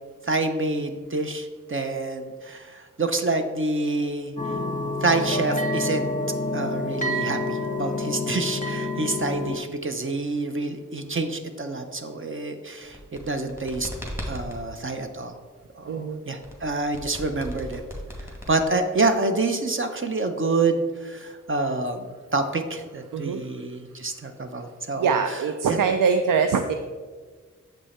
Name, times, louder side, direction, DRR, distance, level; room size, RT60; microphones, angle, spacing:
voice 1, 0.2-4.3 5.0-6.1 6.5-13.9 14.3-15.3 15.8-17.8 18.5-25.2 25.7-25.8, right 3 dB, 40° right, 7 dB, 0.7 m, -27 dB
sound 1, 4.4-9.6, left 1 dB, 25° left, 0.7 m, -28 dB
sound 2, 12.8-14.6 16.4-19.0, equal, 10° right, 2.0 m, -37 dB
voice 2, 15.9-16.2 23.1-23.4 25.0-26.7, right 6 dB, 90° right, 7 dB, 0.5 m, -23 dB
7.4 x 5.4 x 4.2 m, 1.5 s
wide cardioid pair, 65°, 31 cm